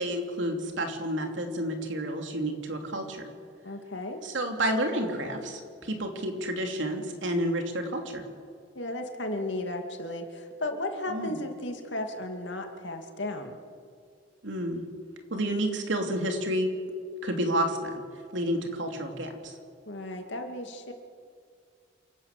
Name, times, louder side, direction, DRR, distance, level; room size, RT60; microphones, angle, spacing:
voice 1, 0.0-3.3 4.2-8.2 11.1-11.3 14.4-14.8 15.3-16.7 17.2-18.0 18.3-19.5, right 1 dB, 85° right, 4 dB, 2.9 m, -30 dB
voice 2, 3.6-4.2 8.7-13.6 19.9-20.9, left 1 dB, 75° left, 5 dB, 2.4 m, -34 dB
28.0 x 12.0 x 8.4 m, 2.3 s
head